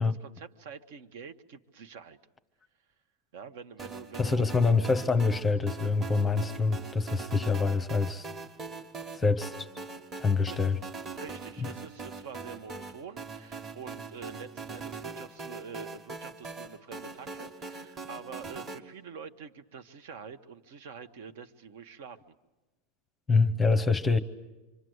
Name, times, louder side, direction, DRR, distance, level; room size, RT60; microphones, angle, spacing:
voice 1, 0.0-2.2 3.3-4.4 10.5-10.6 11.1-22.3, right 6 dB, 60° right, 1.3 m, -46 dB
sound 1, 3.8-18.8, right 4 dB, 20° right, 1.5 m, -42 dB
voice 2, 4.2-8.3 9.1-9.7 10.2-10.8 11.6-11.7 23.3-24.2, left 4 dB, 10° left, 0.8 m, -26 dB
26.5 x 25.5 x 8.0 m
supercardioid pair, 160°, 0 cm